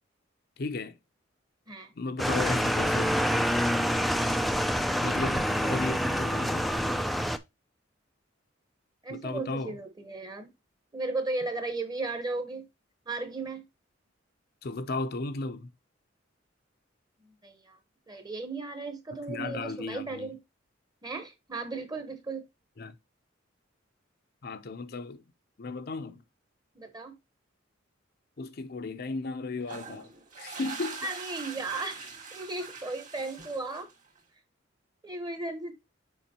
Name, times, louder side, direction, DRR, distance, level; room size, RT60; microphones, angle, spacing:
voice 1, 0.6-1.0 2.0-3.2 5.0-6.8 9.1-9.8 14.6-15.7 19.3-20.3 22.8-22.9 24.4-25.2 25.6-26.2 28.4-31.1, left 3 dB, 55° left, 0.6 m, -35 dB
sound 1, 2.2-7.4, equal, ahead, 0.4 m, -27 dB
voice 2, 5.5-6.0 9.0-10.5 10.9-12.7 13.1-13.7 17.2-17.8 18.1-20.4 21.0-22.5 26.7-27.1 31.0-33.9 35.0-35.7, right 3 dB, 20° right, 1.0 m, -36 dB
sound 2, 29.6-34.2, right 4 dB, 40° right, 2.0 m, -43 dB
7.0 x 5.1 x 2.9 m
head